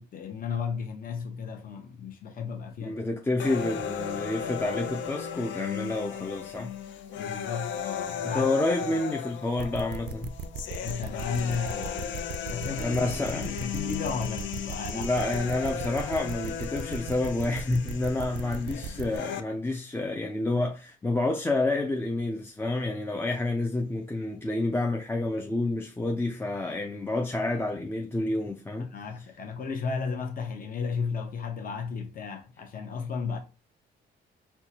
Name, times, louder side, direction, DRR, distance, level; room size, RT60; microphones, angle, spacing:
voice 1, 0.0-3.0 7.2-8.5 10.8-12.1 12.5-15.1 28.9-33.4, left 5 dB, 45° left, 0.8 m, -34 dB
voice 2, 2.8-6.7 8.2-10.3 12.7-13.5 14.9-28.9, left 2 dB, 10° left, 0.4 m, -29 dB
sound 1, 3.4-19.4, left 8 dB, 70° left, 0.4 m, -36 dB
sound 2, 9.6-19.2, right 6 dB, 60° right, 0.4 m, -37 dB
4.4 x 2.2 x 2.8 m
cardioid pair, 90°, 20 cm